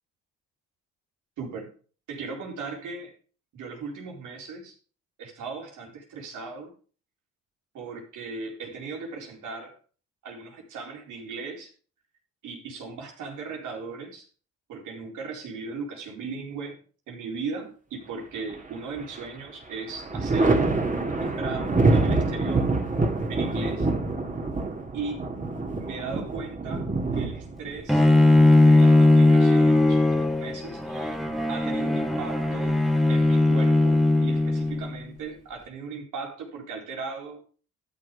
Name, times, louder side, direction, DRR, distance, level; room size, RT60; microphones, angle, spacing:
voice 1, 1.4-1.7 2.1-3.1 3.5-4.8 5.2-6.7 7.7-9.8 10.2-11.7 12.4-14.3 14.7-16.8 17.1-20.6 21.0-22.7 23.3-23.9 24.9-25.3 25.8-26.9 27.1-28.1 28.6-31.2 31.5-32.8 33.1-37.4, right 4 dB, 85° right, 1 dB, 4.1 m, -37 dB
Thunder, 18.5-19.3 19.6-29.2 30.7-31.5, right 3 dB, 25° right, 2.2 m, -26 dB
Bowed string instrument, 27.9-35.0, left 2 dB, ahead, 1.5 m, -19 dB
12.5 x 6.7 x 5.3 m, 0.39 s
cardioid pair, 90°, 30 cm